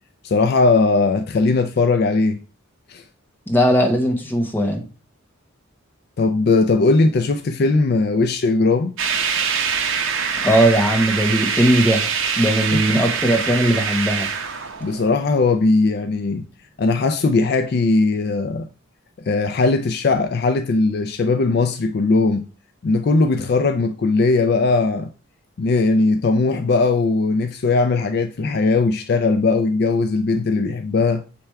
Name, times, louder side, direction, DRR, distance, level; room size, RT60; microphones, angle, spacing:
voice 1, 0.2-2.4 2.9-3.0 6.2-8.9 12.7-13.0 14.8-16.4 16.8-18.7 19.3-22.5 22.8-25.1 25.6-31.2, left 3 dB, 45° left, 0.3 m, -19 dB
voice 2, 3.5-4.8 10.4-12.1 12.4-14.3, right 1 dB, 10° left, 1.0 m, -18 dB
sound 1, 9.0-15.6, right 6 dB, 65° right, 0.8 m, -24 dB
6.8 x 3.4 x 4.4 m
head